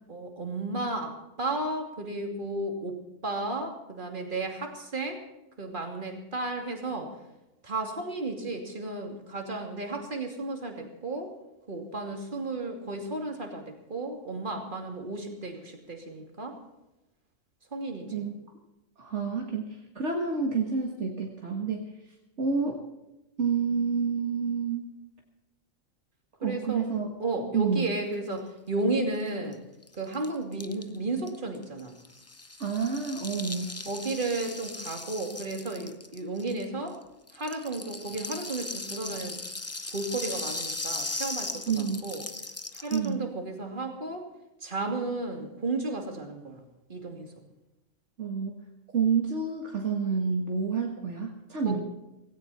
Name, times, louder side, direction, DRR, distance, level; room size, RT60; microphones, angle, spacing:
voice 1, 0.1-5.2 5.6-7.2 7.6-11.3 11.7-16.6 17.7-18.2 26.4-26.8 27.2-29.6 29.9-32.0 33.8-37.0 37.3-39.4 39.9-42.2 42.7-44.3 44.6-46.6 46.9-47.4 51.6-51.8, right 2 dB, 40° right, 3 dB, 2.9 m, -33 dB
voice 2, 19.0-21.9 22.4-22.8 23.4-24.9 26.4-27.1 27.5-27.9 32.6-33.8 41.7-42.0 42.9-43.3 48.2-48.6 48.9-51.8, right 5 dB, 60° right, 1 dB, 2.0 m, -29 dB
Rattle (instrument), 29.3-29.4 29.5-29.6 29.8-36.9 37.3-43.1, left 2 dB, 15° left, 0.7 m, -38 dB
17.5 x 17.0 x 4.3 m, 0.97 s
omnidirectional pair, 1.4 m